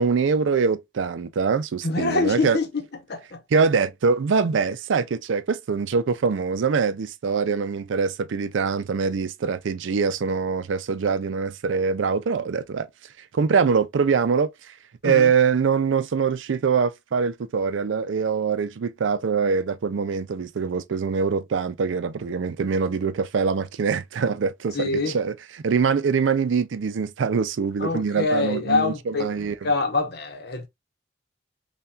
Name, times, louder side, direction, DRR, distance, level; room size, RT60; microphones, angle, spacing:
voice 1, 0.0-2.6 3.5-12.9 13.3-14.5 15.0-25.3 25.6-29.5, right 5 dB, 85° right, 0.4 m, -23 dB
voice 2, 1.8-2.8 3.1-3.4 15.0-15.3 24.7-25.2 27.8-29.3 29.6-30.7, left 3 dB, 60° left, 0.8 m, -25 dB
5.6 x 2.3 x 2.3 m
head